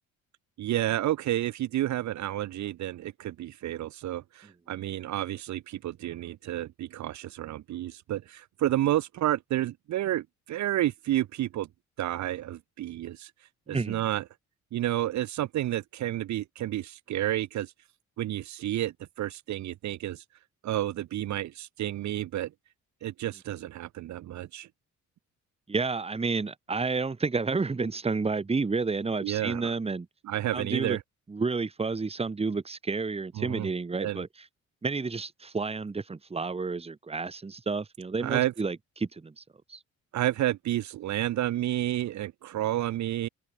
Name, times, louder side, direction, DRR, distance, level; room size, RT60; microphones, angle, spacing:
voice 1, 0.6-11.7 12.0-13.3 13.7-14.2 14.7-17.7 18.2-20.2 20.6-22.5 23.0-24.7 29.2-29.7 30.2-31.0 33.4-33.7 34.0-34.2 38.2-38.5 40.1-43.3, right 13 dB, 70° right, 0.9 m, -30 dB
voice 2, 13.7-14.0 25.7-30.1 30.5-31.0 31.3-34.3 34.8-39.4 39.7-39.8, right 4 dB, 20° right, 1.3 m, -30 dB
cardioid pair, 90°, 30 cm